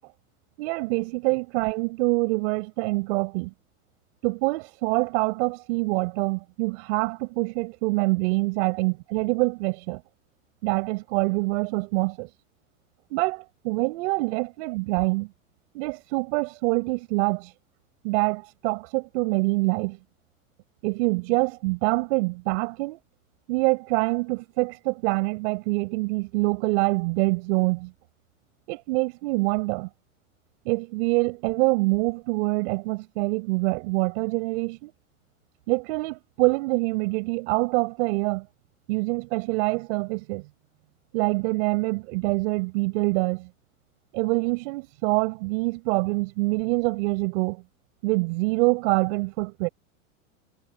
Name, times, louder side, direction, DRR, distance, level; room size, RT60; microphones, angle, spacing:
voice 1, 0.6-3.5 4.2-10.0 10.6-12.3 13.1-15.3 15.7-17.5 18.0-20.0 20.8-23.0 23.5-27.9 28.7-29.9 30.6-34.9 35.7-38.5 38.9-40.4 41.1-43.5 44.1-47.6 48.0-49.7, right 26 dB, 60° right, 5.2 m, -25 dB
supercardioid pair, 125°, 39 cm